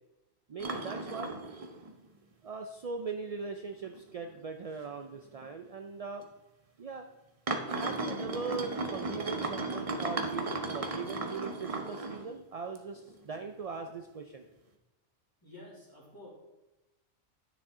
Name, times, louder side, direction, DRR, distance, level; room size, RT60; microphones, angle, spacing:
voice 1, 0.5-1.4 2.4-6.2 6.8-7.1 7.8-14.5, right 4 dB, 55° right, 4 dB, 0.4 m, -40 dB
sound 1, 0.6-2.0 2.5-2.6 3.2-3.3 3.8-4.0 4.3-4.4 5.4-5.5 6.2-6.3 7.5-12.3 12.8-13.5 13.9-14.0, right 2 dB, 35° right, 0.8 m, -35 dB
voice 2, 15.4-16.3, left 2 dB, 15° left, -5 dB, 2.8 m, -50 dB
10.0 x 6.3 x 3.7 m, 1.0 s
omnidirectional pair, 1.2 m